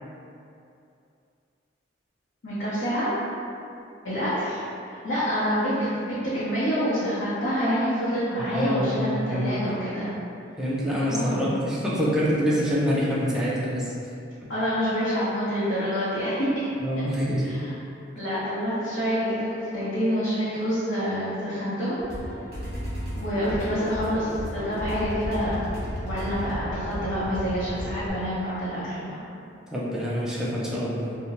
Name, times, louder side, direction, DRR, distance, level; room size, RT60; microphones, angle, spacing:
voice 1, 2.4-3.1 4.0-4.6 5.0-10.1 11.1-11.5 14.5-16.5 17.4-17.8 18.2-19.5 19.7-22.0 23.1-25.7 26.0-29.2, equal, 85° left, -13 dB, 0.7 m, -27 dB
voice 2, 8.5-9.6 10.6-13.9 14.4-14.5 16.8-17.5 29.7-31.2, equal, 5° right, -7 dB, 0.4 m, -26 dB
sound 1, 22.0-28.1, equal, 55° right, 0.9 m, -33 dB
2.7 x 2.1 x 2.9 m, 2.6 s
head